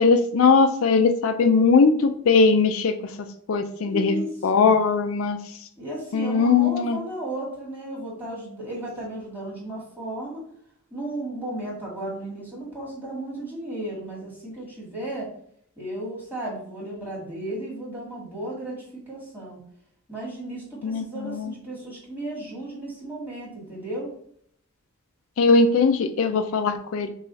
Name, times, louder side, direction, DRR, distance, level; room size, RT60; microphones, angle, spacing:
voice 1, 0.0-4.2 4.4-5.4 6.1-7.0 20.8-21.5 25.4-27.1, left 4 dB, 70° left, 7 dB, 0.4 m, -20 dB
voice 2, 3.8-4.7 5.8-10.4 10.9-15.3 15.8-19.6 20.1-24.1, right 1 dB, 10° right, -6 dB, 1.8 m, -34 dB
5.5 x 2.4 x 3.9 m, 0.64 s
head